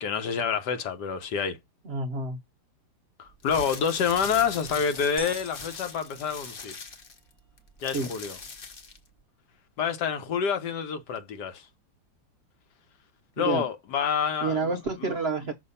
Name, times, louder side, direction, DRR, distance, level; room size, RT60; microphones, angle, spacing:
voice 1, 0.0-1.6 3.2-6.8 7.8-8.4 9.8-11.7 13.4-14.7 15.0-15.2, left 7 dB, 65° left, 1.4 m, -28 dB
voice 2, 1.8-2.4 7.9-8.1 13.4-13.7 14.4-15.5, right 4 dB, 75° right, 0.5 m, -29 dB
sound 1, 3.3-9.1, left 3 dB, 40° left, 0.9 m, -41 dB
sound 2, 5.2-7.1, right 4 dB, 45° right, 1.0 m, -46 dB
6.4 x 2.8 x 5.4 m
omnidirectional pair, 2.1 m